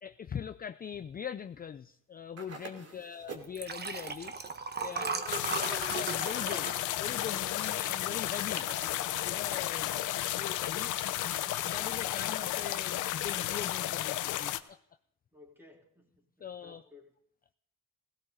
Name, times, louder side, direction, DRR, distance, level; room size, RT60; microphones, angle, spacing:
voice 1, 0.0-4.3 4.8-5.3 5.7-8.7 9.2-9.9 10.4-14.8 16.4-16.8, left 8 dB, 30° left, 12 dB, 0.4 m, -42 dB
sound 1, 2.4-3.6 5.9-6.7 8.6-9.4, right 4 dB, 55° right, 2.9 m, -48 dB
Liquid, 3.4-8.1 8.6-8.8 9.1-9.2, right 5 dB, 35° right, 1.1 m, -37 dB
voice 2, 4.9-5.3 9.7-10.2 15.3-17.1, left 2 dB, 5° right, 0 dB, 3.5 m, -57 dB
sound 2, 5.3-14.6, left 14 dB, 85° left, 0.8 m, -33 dB
17.0 x 16.5 x 3.8 m, 0.71 s
cardioid pair, 90°, 30 cm